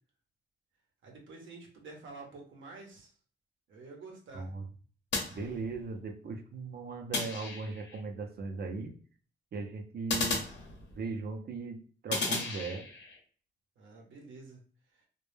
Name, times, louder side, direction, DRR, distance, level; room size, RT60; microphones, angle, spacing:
voice 1, 1.0-3.1 3.7-4.5 13.8-14.6 14.9-15.0, right 3 dB, 85° right, 0 dB, 0.7 m, -49 dB
voice 2, 4.3-4.7 5.3-9.0 9.5-10.4 11.0-12.9, right 3 dB, 55° right, 6 dB, 0.5 m, -38 dB
sound 1, 5.1-6.0 7.1-8.0 10.1-11.2 12.1-13.2, left 3 dB, 65° left, 0.8 m, -35 dB
2.2 x 2.0 x 3.1 m, 0.43 s
cardioid pair, 90°, 20 cm